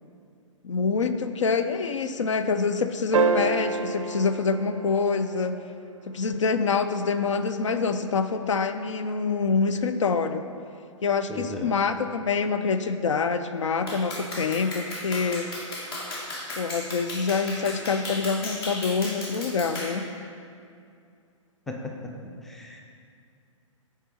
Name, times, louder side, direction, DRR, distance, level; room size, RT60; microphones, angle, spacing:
voice 1, 0.6-5.5 6.1-10.5 11.0-15.5 16.6-20.1, left 5 dB, 65° left, 9 dB, 0.4 m, -26 dB
sound 1, 3.1-5.7 7.9-8.0, right 4 dB, 75° right, 0.4 m, -27 dB
voice 2, 11.3-11.7 21.7-22.8, left 1 dB, ahead, 0 dB, 0.4 m, -37 dB
Clapping, 13.9-20.0, left 1 dB, 50° left, 1.6 m, -35 dB
6.6 x 4.7 x 4.3 m, 2.4 s
figure-of-eight pair, 120°, 17 cm